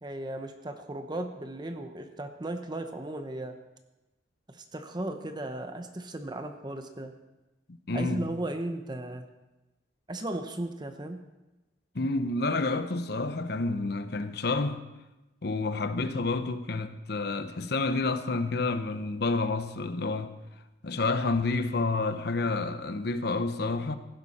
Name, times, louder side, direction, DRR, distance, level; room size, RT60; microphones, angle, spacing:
voice 1, 0.0-3.6 4.5-7.1 7.9-9.3 10.1-11.2, right 1 dB, 25° right, 0.8 m, -36 dB
voice 2, 7.7-8.3 11.9-14.8 15.4-20.3 20.8-24.0, left 3 dB, 60° left, 0.8 m, -29 dB
16.0 x 11.5 x 4.3 m
head